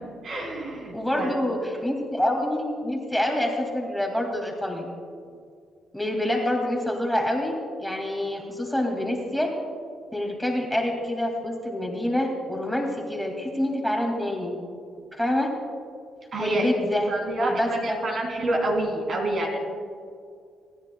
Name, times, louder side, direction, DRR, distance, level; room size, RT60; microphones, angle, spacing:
voice 1, 0.2-1.4 16.3-16.8 17.1-19.6, right 1 dB, 55° right, 0 dB, 3.1 m, -27 dB
voice 2, 0.9-4.9 5.9-9.5 10.1-14.6 15.1-15.5 16.4-17.1 17.4-18.0, left 1 dB, ahead, 1 dB, 2.2 m, -27 dB
26.0 x 10.5 x 2.3 m, 2.2 s
cardioid pair, 90°, 0 cm